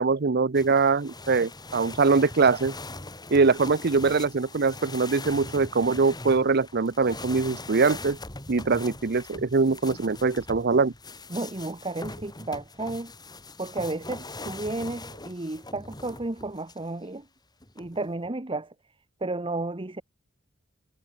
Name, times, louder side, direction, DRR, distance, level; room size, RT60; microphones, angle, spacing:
voice 1, 0.0-2.7 3.3-8.2 8.5-10.9, right 4 dB, 50° right, 0.7 m, -23 dB
Dragging Kayak, 0.5-16.9 17.6-18.3, left 2 dB, 20° left, 4.8 m, -41 dB
voice 2, 11.3-13.1 13.6-17.3 17.8-18.7 19.2-20.0, right 2 dB, 25° right, 1.1 m, -32 dB
head